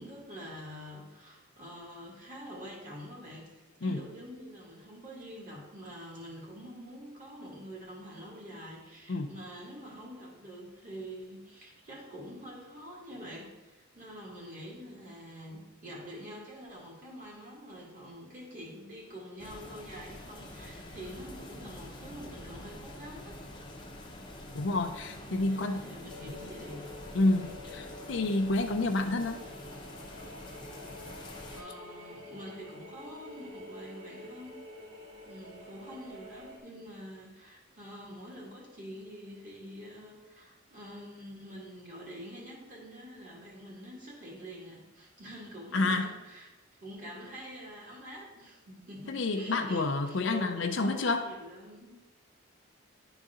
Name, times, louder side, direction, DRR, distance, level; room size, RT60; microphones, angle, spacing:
voice 1, 0.0-23.4 25.1-26.9 31.5-34.6 35.2-46.5 46.8-51.9, equal, 40° right, -4 dB, 2.3 m, -46 dB
sound 1, 19.4-31.6, left 1 dB, 20° left, 0.7 m, -46 dB
voice 2, 24.5-25.8 27.1-29.4 45.7-46.1 49.1-51.3, left 2 dB, 60° left, 6 dB, 0.5 m, -29 dB
sound 2, 26.1-36.6, left 1 dB, 60° right, 2.1 m, -48 dB
11.0 x 4.0 x 3.7 m, 1.1 s
head